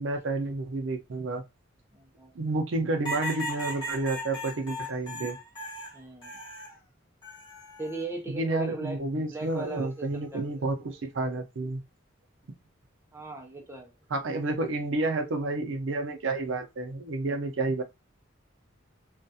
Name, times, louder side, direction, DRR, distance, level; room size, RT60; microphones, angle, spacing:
voice 1, 0.0-1.4 2.3-5.4 8.3-11.8 14.1-17.8, right 2 dB, 75° right, 0.5 m, -30 dB
voice 2, 1.9-2.3 5.9-6.4 7.8-9.0 9.3-10.7 13.1-13.9, right 3 dB, 15° right, 0.5 m, -38 dB
sound 1, 3.0-6.8 7.2-8.0 9.4-9.8, equal, 25° left, 1.1 m, -37 dB
2.3 x 2.3 x 2.6 m
head